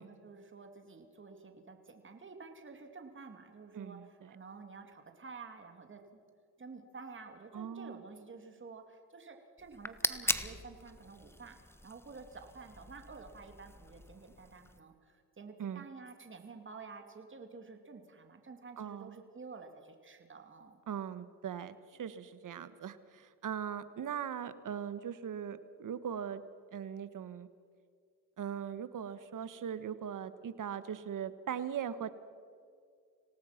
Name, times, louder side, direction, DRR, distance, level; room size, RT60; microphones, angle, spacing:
voice 1, 0.0-6.2 6.6-11.6 11.8-20.8, right 4 dB, 30° right, 5 dB, 2.7 m, -50 dB
voice 2, 3.7-4.3 7.5-8.0 15.6-15.8 18.8-19.2 20.9-26.4 26.7-27.5 28.4-32.1, right 8 dB, 50° right, 13 dB, 1.5 m, -40 dB
sound 1, 9.6-14.8, left 1 dB, 5° left, 1.3 m, -40 dB
26.5 x 18.0 x 6.0 m, 2.2 s
cardioid pair, 80°, 39 cm